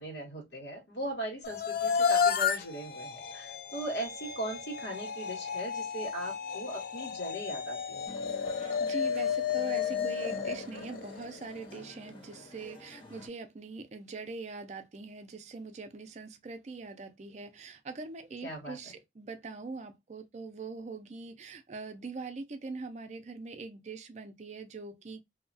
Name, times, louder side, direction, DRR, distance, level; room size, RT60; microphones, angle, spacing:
voice 1, 0.0-8.1 18.4-18.8, right 1 dB, 80° left, 1.5 m, -39 dB
sound 1, 1.4-11.6, left 7 dB, 55° left, 0.4 m, -32 dB
sound 2, 8.1-13.3, left 2 dB, 30° left, 0.7 m, -48 dB
voice 2, 8.6-25.2, right 3 dB, 40° right, 0.4 m, -42 dB
2.7 x 2.3 x 2.5 m
head